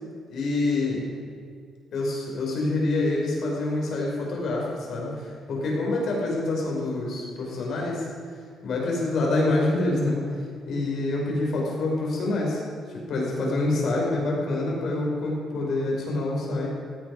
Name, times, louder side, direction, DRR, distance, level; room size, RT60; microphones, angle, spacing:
voice 1, 0.3-1.1 1.9-8.1 8.6-10.2 10.7-12.6 13.1-16.7, left 2 dB, 55° left, -2 dB, 5.4 m, -26 dB
17.0 x 16.5 x 4.9 m, 2.2 s
cardioid pair, 150°, 0 cm